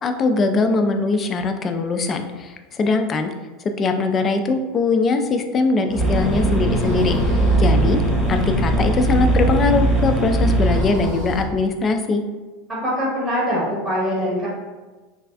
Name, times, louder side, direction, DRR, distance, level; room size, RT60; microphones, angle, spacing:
voice 1, 0.0-3.3 3.6-7.1 7.6-8.0 8.3-12.2, left 3 dB, 30° left, 6 dB, 0.3 m, -21 dB
sound 1, 5.9-11.4, left 1 dB, 75° right, 1.1 m, -27 dB
sound 2, 6.0-11.1, right 2 dB, ahead, 0.7 m, -20 dB
voice 2, 12.7-14.5, equal, 35° right, -6 dB, 1.0 m, -23 dB
3.2 x 2.3 x 2.3 m, 1.2 s
figure-of-eight pair, 85°, 0 cm